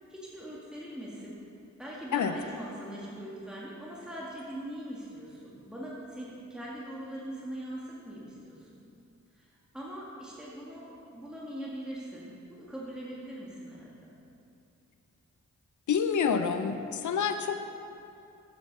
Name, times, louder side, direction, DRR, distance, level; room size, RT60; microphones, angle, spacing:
voice 1, 0.1-1.4 1.8-8.8 9.3-14.1, right 1 dB, 5° right, -6 dB, 2.1 m, -42 dB
voice 2, 15.9-17.8, left 6 dB, 75° left, 8 dB, 0.7 m, -28 dB
8.7 x 8.1 x 5.4 m, 2.7 s
cardioid pair, 45°, 30 cm